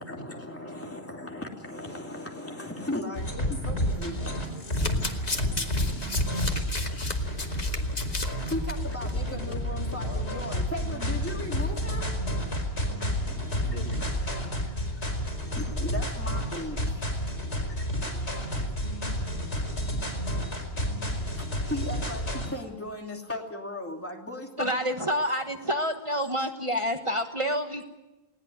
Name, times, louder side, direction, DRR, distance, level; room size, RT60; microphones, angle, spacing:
voice 1, 0.0-7.6 8.4-12.1 13.0-13.8 14.3-14.4 14.8-17.2 17.7-18.3 20.5-25.4 26.7-26.8, left 1 dB, 10° left, 1 dB, 2.8 m, -38 dB
sound 1, 3.1-22.5, equal, 85° left, 5.1 m, -30 dB
voice 2, 3.6-5.3 9.0-10.4 13.4-14.8 18.0-19.7, right 1 dB, 65° left, 3 dB, 5.1 m, -45 dB
Domestic sounds home sounds, 4.6-8.7 9.1-9.3 9.5-9.6, left 2 dB, 40° left, 1.8 m, -34 dB
voice 3, 24.6-27.8, equal, 30° right, 5 dB, 1.3 m, -28 dB
20.5 x 18.0 x 9.3 m, 1.0 s
omnidirectional pair, 1.1 m